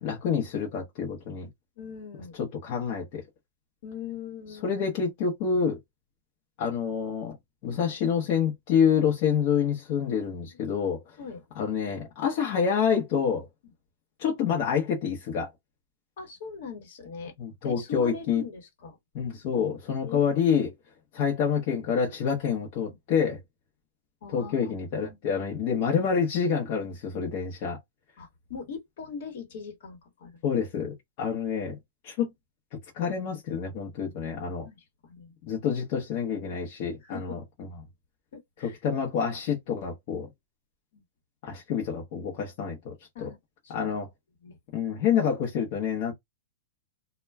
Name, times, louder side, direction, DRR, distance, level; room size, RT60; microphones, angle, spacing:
voice 1, 0.0-1.5 2.4-3.2 4.6-5.8 6.6-7.4 7.6-11.0 11.6-13.5 14.2-15.5 17.4-18.4 19.1-20.7 21.1-23.4 24.3-27.8 30.4-31.8 32.0-32.3 33.0-34.7 35.5-37.4 38.6-40.3 41.4-43.3 43.7-44.1 44.7-46.1, left 7 dB, 40° left, 0.8 m, -27 dB
voice 2, 1.8-2.4 3.8-4.7 10.4-10.6 11.2-11.4 16.2-17.3 17.6-19.0 20.0-20.3 22.9-23.0 24.2-25.2 28.2-30.4 34.6-35.3 37.0-37.4 38.3-38.8 40.9-41.0 43.1-43.4 43.6-43.9 44.4-44.6, left 6 dB, 60° left, 1.1 m, -41 dB
2.2 x 2.1 x 3.3 m
hypercardioid pair, 160°, 0 cm